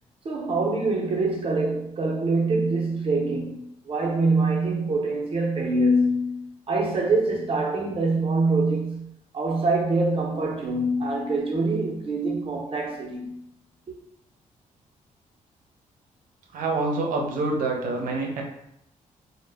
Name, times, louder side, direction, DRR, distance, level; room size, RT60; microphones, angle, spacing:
voice 1, 0.2-13.4, right 2 dB, 40° right, 0.6 m, -25 dB
voice 2, 16.5-18.4, right 3 dB, 90° right, 0.6 m, -26 dB
2.1 x 2.0 x 3.3 m
cardioid pair, 115°, 14 cm